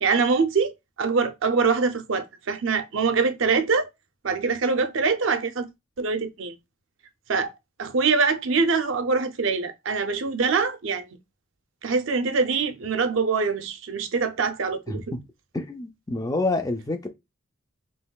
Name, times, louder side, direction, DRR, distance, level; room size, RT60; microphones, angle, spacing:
voice 1, 0.0-3.9 4.2-5.7 6.0-6.5 7.3-7.5 7.8-11.1 11.8-15.1, right 4 dB, 65° right, 0.6 m, -24 dB
voice 2, 14.9-15.2 15.5-17.1, left 2 dB, 15° left, 0.4 m, -28 dB
5.4 x 3.0 x 2.3 m
head